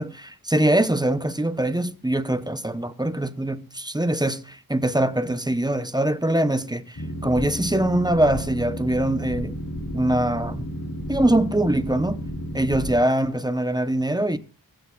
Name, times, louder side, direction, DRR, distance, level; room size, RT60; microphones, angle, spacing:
voice 1, 0.0-9.5 9.9-10.7 11.1-12.2 12.5-14.4, right 1 dB, 10° right, 0.8 m, -23 dB
Boat Water vehicle, 7.0-13.0, equal, 70° left, 2.8 m, -32 dB
24.0 x 8.2 x 2.4 m
wide cardioid pair, 85°, 37 cm